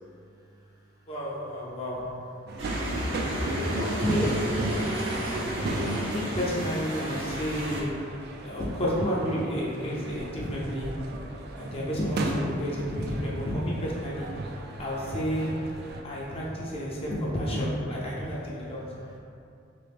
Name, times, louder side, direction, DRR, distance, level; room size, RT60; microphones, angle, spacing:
voice 1, 1.1-2.0 3.7-4.6 6.1-7.9 8.4-10.9 11.6-14.3 14.8-15.5 16.0-18.8, equal, 30° left, -5 dB, 0.5 m, -30 dB
sound 1, 2.5-16.0, right 2 dB, 55° right, 0.3 m, -37 dB
sound 2, 2.6-7.8, equal, 75° right, 0.7 m, -31 dB
voice 2, 8.0-8.6 11.0-11.5 14.4-14.9 15.9-17.0 18.1-19.2, right 1 dB, 20° right, -6 dB, 0.6 m, -52 dB
2.9 x 2.9 x 3.4 m, 2.5 s
head